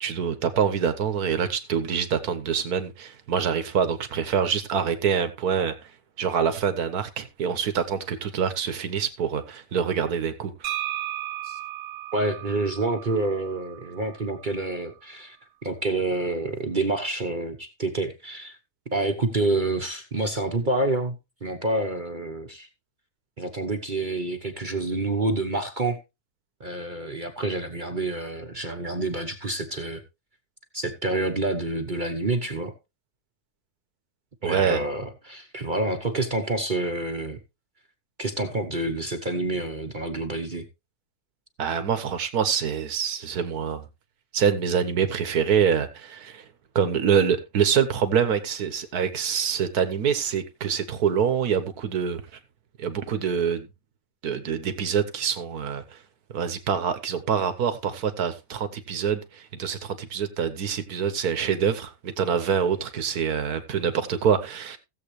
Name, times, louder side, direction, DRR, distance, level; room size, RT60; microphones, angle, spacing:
voice 1, 0.0-5.7 6.2-10.7 34.4-34.8 41.6-43.9 44.3-46.5 46.8-52.2 52.8-53.7 54.2-56.0 56.3-64.8, right 7 dB, 80° right, 1.7 m, -25 dB
sound 1, 10.6-14.4, right 13 dB, 60° right, 1.3 m, -35 dB
voice 2, 12.1-15.4 15.6-18.6 18.9-21.2 21.4-22.7 23.4-26.0 26.6-30.0 30.7-32.7 34.4-37.4 38.2-40.7, right 2 dB, 35° right, 1.1 m, -28 dB
16.5 x 7.7 x 3.2 m
omnidirectional pair, 1.6 m